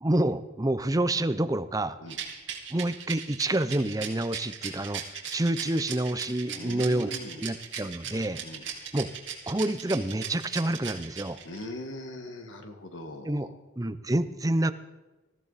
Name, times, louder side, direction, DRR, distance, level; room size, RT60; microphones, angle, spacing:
voice 1, 0.0-2.0 2.7-5.0 5.3-7.1 7.4-8.4 8.9-9.1 9.5-11.4 13.2-13.5 13.8-14.7, right 1 dB, 20° right, 11 dB, 0.6 m, -28 dB
Rattle, 2.1-11.6, right 9 dB, 65° right, 2.9 m, -37 dB
voice 2, 6.6-7.5 8.4-8.7 11.5-13.6, left 1 dB, 75° left, 6 dB, 1.8 m, -41 dB
20.0 x 15.0 x 4.1 m, 1.2 s
head